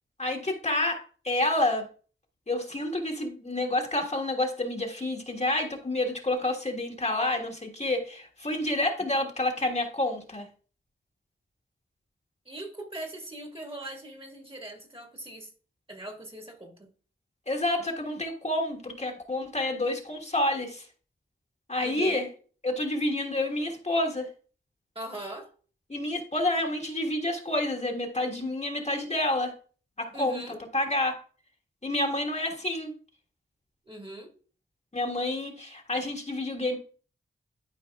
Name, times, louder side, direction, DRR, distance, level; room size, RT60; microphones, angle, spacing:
voice 1, 0.2-1.9 2.5-10.5 17.5-20.8 21.7-22.3 22.6-24.3 25.9-29.5 30.0-30.4 30.7-31.1 31.8-32.9 34.9-36.8, left 1 dB, 30° left, 1.4 m, -29 dB
voice 2, 12.5-15.5 15.9-16.9 21.8-22.3 25.0-25.5 30.1-30.6 33.9-34.3, right 1 dB, 25° right, 1.8 m, -40 dB
12.5 x 4.6 x 2.3 m
cardioid pair, 60°, 21 cm